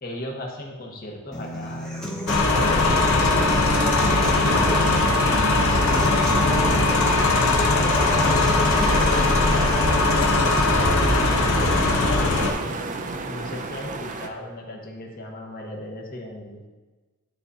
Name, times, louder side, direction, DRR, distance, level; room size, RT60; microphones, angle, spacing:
voice 1, 0.0-1.9 2.3-4.4 5.2-9.7 10.0-11.8 12.2-12.8 13.3-16.6, left 1 dB, 45° left, 0 dB, 1.1 m, -36 dB
Human voice / Acoustic guitar, 1.3-9.3, equal, 5° left, 1.0 m, -36 dB
sound 1, 2.3-12.5, left 2 dB, 75° left, 0.8 m, -20 dB
sound 2, 2.5-14.3, right 3 dB, 35° right, 0.5 m, -32 dB
11.5 x 4.0 x 2.7 m, 1.2 s
head